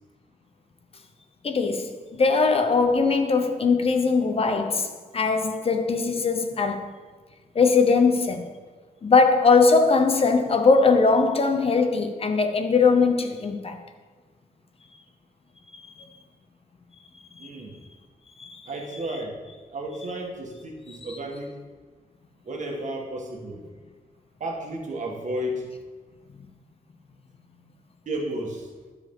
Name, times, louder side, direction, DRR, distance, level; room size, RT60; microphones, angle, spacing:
voice 1, 1.4-6.9 7.5-8.5 9.0-13.8 15.7-16.2 17.4-17.5 18.4-18.6 21.1-21.2, left 4 dB, 40° left, 0.8 m, -21 dB
voice 2, 17.4-17.8 18.6-19.3 19.7-21.5 22.4-23.6 24.4-25.7 28.0-28.7, right 1 dB, 55° right, 1.5 m, -32 dB
12.5 x 4.7 x 3.7 m
cardioid pair, 110°, 15 cm